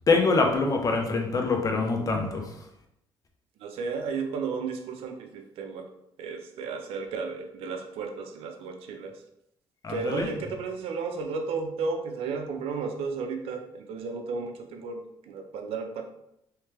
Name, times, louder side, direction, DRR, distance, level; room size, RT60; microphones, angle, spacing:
voice 1, 0.1-2.7 9.8-10.3, left 3 dB, 35° left, 2 dB, 0.8 m, -25 dB
voice 2, 3.6-5.9 6.2-9.2 9.9-16.1, right 4 dB, 80° right, 5 dB, 0.6 m, -33 dB
3.2 x 3.2 x 3.3 m, 0.80 s
cardioid pair, 80°, 10 cm